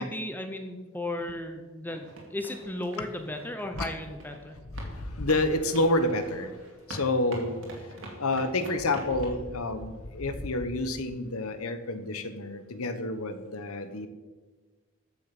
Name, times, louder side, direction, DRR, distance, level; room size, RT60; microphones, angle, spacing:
voice 1, 0.0-4.6, left 1 dB, 10° left, 5 dB, 0.7 m, -35 dB
sound 1, 1.9-9.4, right 1 dB, 65° right, 2.4 m, -45 dB
voice 2, 4.7-6.6 6.9-7.6 8.2-14.1, left 2 dB, 80° left, 10 dB, 1.1 m, -29 dB
14.0 x 6.7 x 5.9 m, 1.4 s
head